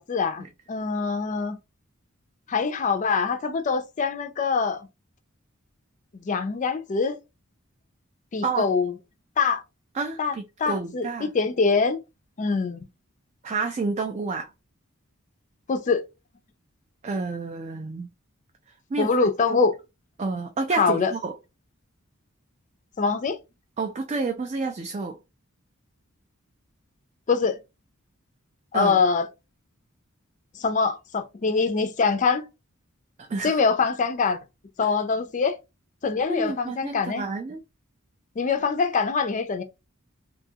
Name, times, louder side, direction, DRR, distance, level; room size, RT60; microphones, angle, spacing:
voice 1, 0.0-1.6 2.5-4.9 6.1-7.2 8.3-8.9 9.4-9.6 10.2-10.3 10.6-12.0 12.4-12.9 15.7-16.0 19.0-19.8 20.7-21.1 23.0-23.4 27.3-27.6 28.7-29.3 30.5-32.5 33.4-34.4 34.8-35.6 36.0-37.3 38.4-39.6, left 4 dB, 35° left, 0.4 m, -24 dB
voice 2, 10.0-11.3 13.4-14.5 17.0-18.1 18.9-19.1 19.5-19.6 20.2-21.3 23.8-25.2 28.7-29.0 33.3-33.5 36.3-37.6, right 3 dB, 30° right, 0.3 m, -29 dB
2.6 x 2.3 x 2.7 m
head